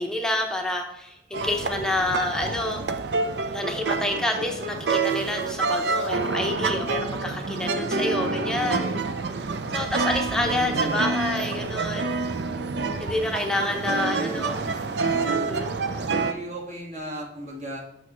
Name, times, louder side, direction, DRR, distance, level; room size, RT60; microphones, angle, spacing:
voice 1, 0.0-2.8 3.5-8.9 9.7-12.1 13.0-14.6 15.3-15.7, left 1 dB, 5° left, 2 dB, 0.7 m, -28 dB
sound 1, 1.3-16.3, right 3 dB, 70° right, 0.5 m, -27 dB
voice 2, 7.7-8.9 10.5-11.1 13.9-14.6 15.9-17.8, equal, 40° right, -2 dB, 1.8 m, -37 dB
8.1 x 6.2 x 3.0 m, 0.87 s
head